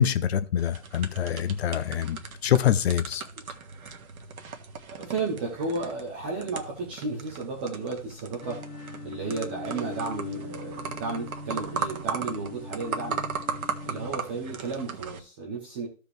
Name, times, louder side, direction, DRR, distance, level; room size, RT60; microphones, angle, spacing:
voice 1, 0.0-3.2, left 9 dB, 50° left, 0.8 m, -25 dB
sound 1, 0.6-15.2, right 5 dB, 85° right, 1.5 m, -37 dB
voice 2, 4.9-8.6 9.0-13.2 13.8-15.9, right 3 dB, 10° right, 0.4 m, -33 dB
sound 2, 8.4-14.1, left 4 dB, 10° left, 1.7 m, -41 dB
14.5 x 5.1 x 3.2 m
hypercardioid pair, 140°, 41 cm